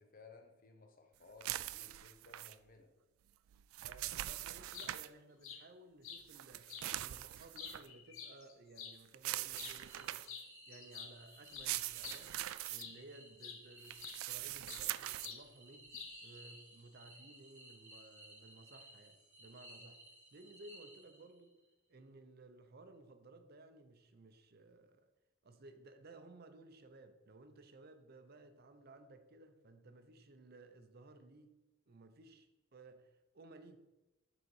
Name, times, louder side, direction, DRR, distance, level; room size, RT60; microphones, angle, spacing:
voice 1, 0.0-2.9, left 4 dB, 45° left, 4 dB, 0.9 m, -60 dB
sound 1, 1.4-2.5 3.5-5.1 6.3-7.9 9.1-10.4 11.4-12.8 13.8-15.3, right 15 dB, 85° right, 0.3 m, -42 dB
voice 2, 3.8-10.4 10.7-12.4 12.7-15.9 16.2-20.0 20.3-21.6 21.9-25.1 25.4-31.6 31.9-33.8, right 2 dB, 50° right, 9 dB, 0.6 m, -58 dB
sound 2, 4.7-4.9 5.4-5.6 6.0-6.2 6.7-6.9 7.3-9.0 9.5-9.8 10.3-10.5 10.7-13.0 13.4-13.6 14.0-14.9 15.2-15.4 15.9-16.3, left 7 dB, 75° left, 0.9 m, -49 dB
sound 3, 9.5-21.5, right 1 dB, 20° right, 2.3 m, -59 dB
7.6 x 4.0 x 4.7 m, 1.0 s
head